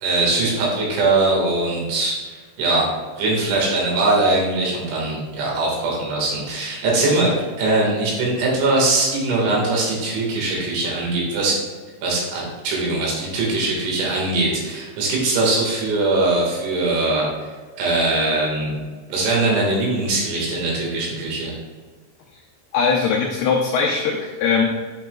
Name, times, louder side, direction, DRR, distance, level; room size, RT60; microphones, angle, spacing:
voice 1, 0.0-2.9 3.2-11.6 12.0-17.3 17.8-18.8 19.1-21.5, right 2 dB, 80° right, -3 dB, 4.0 m, -21 dB
voice 2, 22.7-24.6, left 5 dB, 90° left, -1 dB, 2.2 m, -20 dB
8.2 x 6.1 x 2.2 m, 1.4 s
omnidirectional pair, 5.3 m